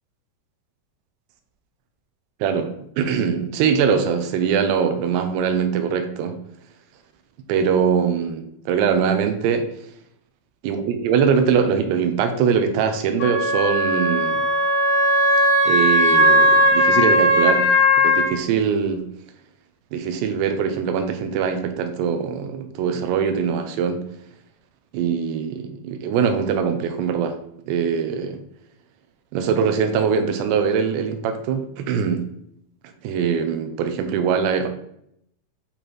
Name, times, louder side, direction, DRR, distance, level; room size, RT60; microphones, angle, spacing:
voice 1, 2.4-6.3 7.5-9.7 10.6-14.4 15.7-17.7 18.0-19.0 19.9-24.0 24.9-27.4 27.7-28.4 29.3-32.3 33.0-34.7, right 6 dB, 80° right, 6 dB, 2.6 m, -22 dB
Wind instrument woodwind instrument, 13.2-18.3, equal, 50° left, 2.0 m, -17 dB
8.8 x 3.3 x 4.4 m, 0.72 s
omnidirectional pair, 5.6 m